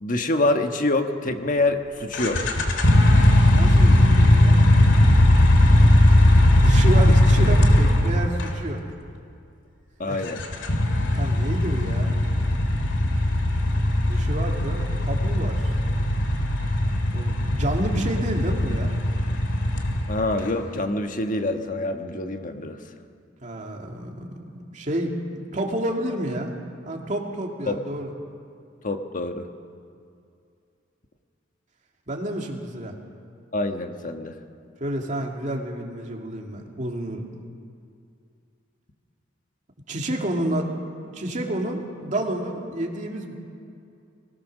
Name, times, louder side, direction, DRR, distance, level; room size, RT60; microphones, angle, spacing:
voice 1, 0.0-2.5 10.0-10.4 20.1-22.8 27.7-27.8 28.8-29.5 33.5-34.3, left 2 dB, 45° left, 6 dB, 1.4 m, -25 dB
sound 1, 2.1-8.5 10.3-20.4, left 1 dB, 75° left, 2.3 m, -18 dB
voice 2, 3.5-4.6 6.1-8.8 10.0-10.2 11.1-12.1 14.0-15.8 17.1-19.0 23.4-26.5 26.8-28.1 32.1-33.0 34.8-37.2 39.9-40.7 41.1-43.3, right 1 dB, 40° right, 1 dB, 2.5 m, -30 dB
23.5 x 18.0 x 6.5 m, 2.4 s
head